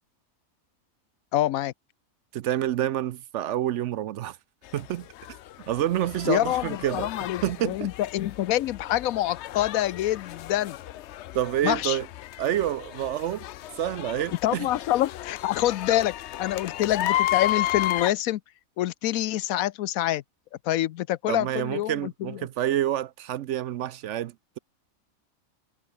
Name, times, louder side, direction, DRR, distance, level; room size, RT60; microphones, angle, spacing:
voice 1, 1.3-1.7 6.3-10.8 11.6-12.0 14.4-18.4 18.8-20.2 20.7-22.4, left 14 dB, 85° left, 1.1 m, -26 dB
voice 2, 2.3-4.4 4.7-5.1 5.7-7.1 7.4-7.9 11.3-12.1 12.4-13.4 13.8-14.7 21.3-24.6, right 12 dB, 65° right, 0.8 m, -28 dB
sound 1, 4.6-18.1, left 13 dB, 65° left, 0.7 m, -33 dB
omnidirectional pair, 1.4 m